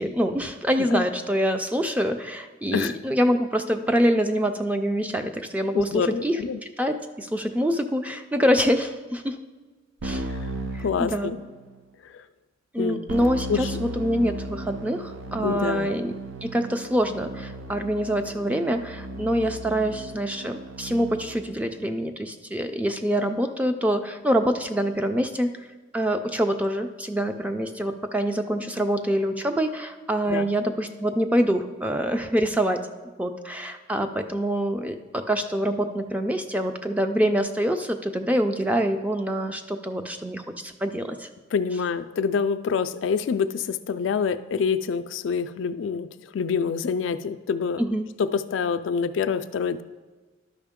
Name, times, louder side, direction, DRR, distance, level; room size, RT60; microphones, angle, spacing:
voice 1, 0.0-6.4 6.8-9.4 10.0-10.3 10.7-11.3 12.7-16.1 16.4-25.5 25.9-32.8 33.2-41.3 47.8-48.1, equal, 5° right, 6 dB, 0.3 m, -25 dB
voice 2, 5.7-6.6 10.8-11.4 12.8-13.0 13.5-13.7 15.4-15.9 30.3-30.5 41.5-46.1 46.3-47.8 48.2-49.8, left 6 dB, 70° left, 12 dB, 0.3 m, -26 dB
Keyboard (musical), 10.0-11.7 13.1-21.5, right 1 dB, 80° right, 0.5 m, -35 dB
11.5 x 5.1 x 3.6 m, 1.3 s
head